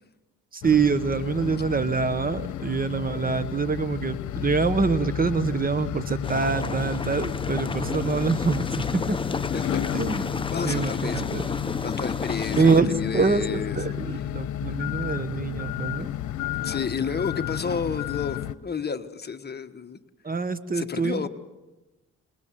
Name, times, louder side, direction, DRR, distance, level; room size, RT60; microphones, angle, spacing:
voice 1, 0.5-9.2 9.9-10.2 10.6-11.4 12.6-16.1 20.2-21.3, right 5 dB, 30° right, 13 dB, 1.3 m, -25 dB
sound 1, 0.6-18.6, left 11 dB, 75° left, 1.0 m, -32 dB
sound 2, 6.2-12.8, left 4 dB, 15° left, 0.8 m, -32 dB
voice 2, 10.1-11.6 11.8-14.3 14.6-14.7 16.6-20.0 20.7-21.3, left 6 dB, 35° left, 8 dB, 1.4 m, -31 dB
28.0 x 20.5 x 7.6 m, 1.1 s
cardioid pair, 90°, 30 cm